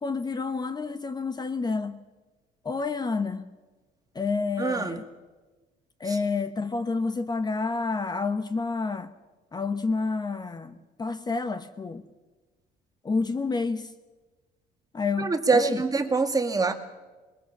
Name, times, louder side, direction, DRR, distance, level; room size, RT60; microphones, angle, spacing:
voice 1, 0.0-2.0 2.6-3.5 4.1-5.1 6.0-9.1 9.5-12.0 13.0-13.9 14.9-15.8, left 4 dB, 25° left, 1.1 m, -29 dB
voice 2, 4.6-5.0 15.2-16.7, right 4 dB, 20° right, 2.2 m, -24 dB
21.5 x 21.0 x 7.3 m
cardioid pair, 110°, 17 cm